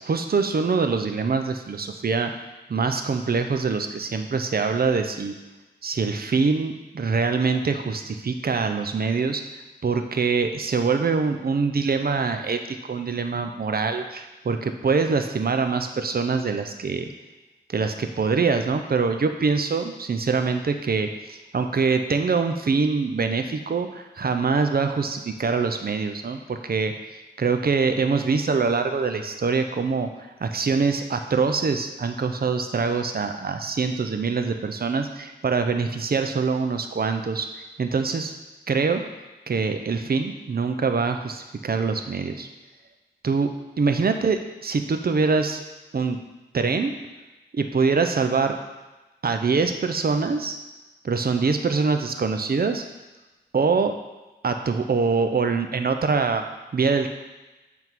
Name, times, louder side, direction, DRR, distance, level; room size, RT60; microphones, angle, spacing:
voice 1, 0.0-2.3 2.7-5.3 5.8-9.4 9.8-17.1 17.7-30.1 30.4-37.5 37.8-38.3 38.7-39.0 39.5-42.5 43.2-45.6 45.9-46.2 46.5-46.9 47.5-48.6 49.2-50.6 51.0-52.8 53.5-53.9 54.4-56.4 56.7-57.1, right 4 dB, 60° right, 7 dB, 0.7 m, -24 dB
8.0 x 3.6 x 4.6 m, 1.1 s
cardioid pair, 55°, 18 cm